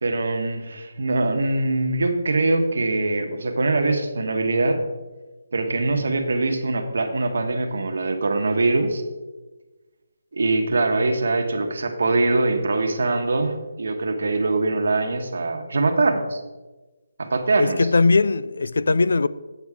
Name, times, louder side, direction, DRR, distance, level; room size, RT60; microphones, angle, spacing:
voice 1, 0.0-4.8 5.5-9.0 10.3-16.4 17.2-17.9, right 2 dB, 65° right, 1.2 m, -23 dB
voice 2, 17.6-19.3, left 3 dB, 70° left, 0.4 m, -19 dB
8.1 x 7.9 x 3.6 m
hypercardioid pair, 175°, 0 cm